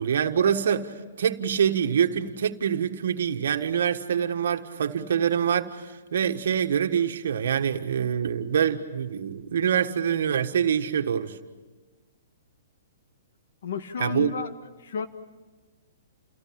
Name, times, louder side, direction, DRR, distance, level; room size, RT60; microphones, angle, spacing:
voice 1, 0.0-11.4 14.0-14.3, right 8 dB, 70° right, 1.5 m, -25 dB
voice 2, 13.6-14.5 14.8-15.1, left 6 dB, 70° left, 1.8 m, -31 dB
30.0 x 17.0 x 8.8 m
hypercardioid pair, 155°, 0 cm